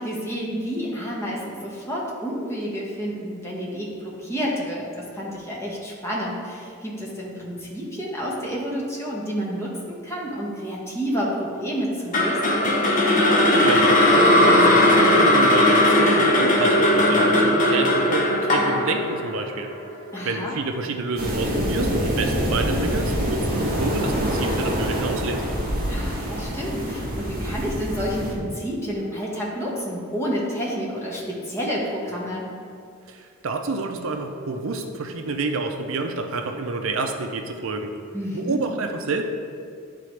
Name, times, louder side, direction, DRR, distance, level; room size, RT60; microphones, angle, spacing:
voice 1, 0.0-12.7 20.1-20.5 25.9-32.4 38.1-38.6, equal, 10° left, -5 dB, 1.2 m, -29 dB
sound 1, 12.1-20.3, left 1 dB, 35° left, 0.8 m, -18 dB
voice 2, 13.6-19.7 20.2-25.5 33.1-37.9 38.3-39.2, right 3 dB, 65° right, 5 dB, 0.5 m, -28 dB
sound 2, 21.2-28.3, equal, 45° right, 1.1 m, -25 dB
11.0 x 3.8 x 3.2 m, 2.3 s
head